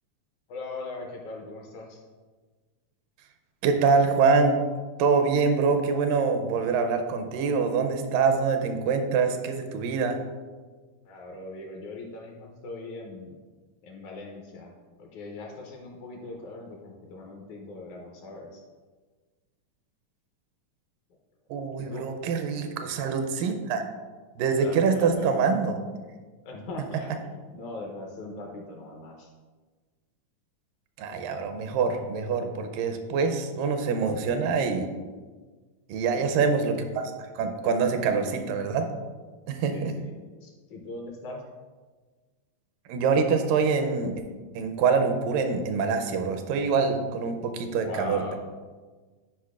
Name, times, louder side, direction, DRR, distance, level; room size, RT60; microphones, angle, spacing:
voice 1, 0.5-2.0 11.1-13.3 13.8-18.6 21.7-22.1 24.6-25.3 26.4-29.3 34.0-34.6 36.1-36.6 38.0-38.4 39.7-40.1 40.4-41.4 47.8-48.4, left 2 dB, 75° left, 0 dB, 1.9 m, -40 dB
voice 2, 3.6-4.6 5.0-10.2 21.5-23.8 24.4-25.8 31.0-34.9 35.9-38.9 39.5-39.9 42.9-44.1 44.5-48.4, right 5 dB, 85° right, 6 dB, 2.2 m, -25 dB
10.5 x 4.9 x 2.4 m, 1.4 s
omnidirectional pair, 3.9 m